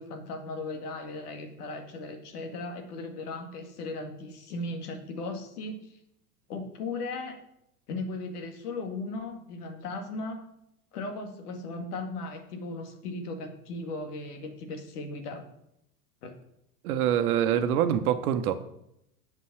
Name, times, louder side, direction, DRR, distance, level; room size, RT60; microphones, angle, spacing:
voice 1, 0.0-5.8 6.5-7.4 7.9-10.4 10.9-15.4 16.2-16.3 17.6-17.7, left 2 dB, 70° left, 5 dB, 2.2 m, -37 dB
voice 2, 16.8-18.5, right 10 dB, 65° right, 10 dB, 1.2 m, -25 dB
8.2 x 5.6 x 7.9 m, 0.77 s
hypercardioid pair, 100°, 47 cm